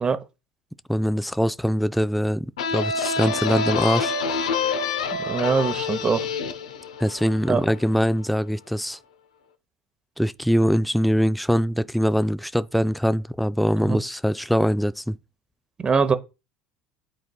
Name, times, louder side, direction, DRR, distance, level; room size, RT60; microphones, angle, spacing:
voice 1, 0.9-4.1 7.0-9.0 10.2-15.2, equal, ahead, 0.3 m, -23 dB
sound 1, 2.6-8.0, left 5 dB, 90° left, 0.6 m, -27 dB
voice 2, 5.3-6.3 7.5-7.6 13.8-14.0 15.8-16.2, right 5 dB, 25° right, 0.8 m, -22 dB
10.5 x 4.3 x 2.3 m
hypercardioid pair, 90°, 3 cm